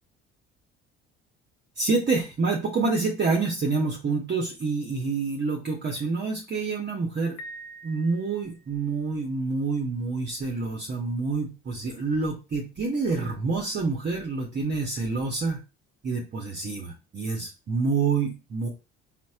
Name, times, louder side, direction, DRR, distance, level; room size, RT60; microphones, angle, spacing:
voice 1, 1.8-7.4 7.8-15.6 16.0-18.7, right 4 dB, 30° right, -1 dB, 0.8 m, -27 dB
Piano, 7.4-8.8, right 1 dB, 60° left, 0.7 m, -44 dB
4.1 x 2.0 x 2.3 m, 0.29 s
hypercardioid pair, 60°, 34 cm